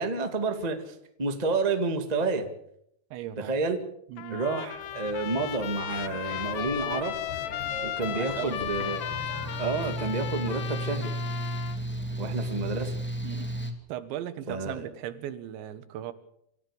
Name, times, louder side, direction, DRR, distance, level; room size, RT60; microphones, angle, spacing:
voice 1, 0.0-2.5 3.4-3.8 4.3-7.1 7.8-9.1 9.6-11.1 12.2-12.9 14.5-14.9, right 3 dB, 55° right, 6 dB, 0.4 m, -30 dB
voice 2, 3.1-3.5 4.1-4.4 8.1-8.6 12.1-12.4 13.2-13.5 13.9-16.1, right 11 dB, 85° right, 13 dB, 3.7 m, -38 dB
Trumpet, 4.2-11.8, left 12 dB, 80° left, 1.9 m, -35 dB
sound 1, 4.7-10.1, left 2 dB, 30° left, 4.6 m, -43 dB
Mechanical fan, 8.3-13.7, right 1 dB, 10° left, 0.7 m, -34 dB
27.5 x 15.0 x 7.1 m, 0.73 s
omnidirectional pair, 5.0 m